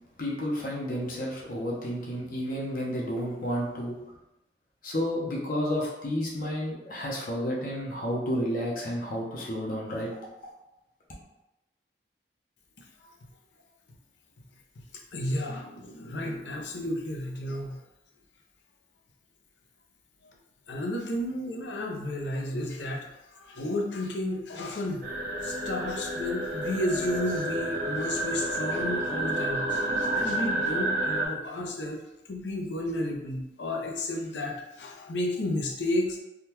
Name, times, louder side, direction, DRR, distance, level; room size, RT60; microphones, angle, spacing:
voice 1, 0.2-4.0 4.8-10.1, equal, 50° left, -4 dB, 0.6 m, -31 dB
voice 2, 15.1-17.8 20.7-25.1 25.4-32.0 32.3-36.2, left 1 dB, 90° left, 0 dB, 0.6 m, -32 dB
sound 1, 25.0-31.3, right 1 dB, 65° right, 0.7 m, -30 dB
3.6 x 2.2 x 2.9 m, 0.94 s
head